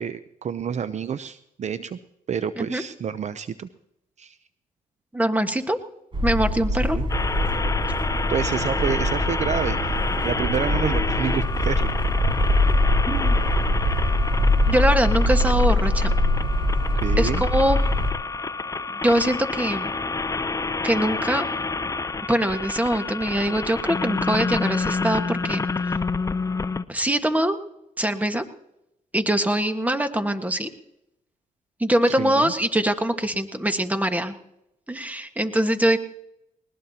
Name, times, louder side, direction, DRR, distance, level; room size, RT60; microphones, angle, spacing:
voice 1, 0.0-2.0 2.3-3.7 4.2-4.4 6.8-7.1 8.3-11.9 17.0-17.4 32.2-32.5, right 7 dB, 50° right, 13 dB, 0.6 m, -28 dB
voice 2, 5.1-5.8 6.2-7.0 13.1-13.4 14.7-16.1 17.2-17.8 19.0-19.9 20.8-21.5 22.3-25.6 26.9-27.6 28.0-28.4 29.1-30.7 31.8-34.3 34.9-36.0, right 1 dB, 10° right, 8 dB, 1.5 m, -23 dB
sound 1, 6.1-18.1, left 1 dB, 35° right, 5.1 m, -23 dB
sound 2, 7.1-26.8, left 4 dB, 20° left, 0.6 m, -29 dB
20.0 x 20.0 x 2.9 m, 0.84 s
cardioid pair, 65°, 15 cm